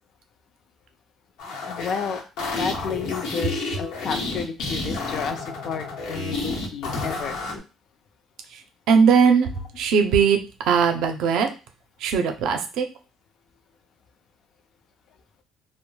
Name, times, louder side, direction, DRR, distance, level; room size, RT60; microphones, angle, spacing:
sound 1, 1.4-7.6, left 3 dB, 90° left, 0.8 m, -30 dB
voice 1, 1.6-2.2 2.6-7.4, left 6 dB, 55° left, 7 dB, 0.4 m, -31 dB
voice 2, 8.9-9.5 9.8-10.4 10.6-11.5 12.0-12.9, right 6 dB, 75° right, 6 dB, 0.5 m, -19 dB
2.2 x 2.0 x 3.1 m, 0.32 s
cardioid pair, 125°, 0 cm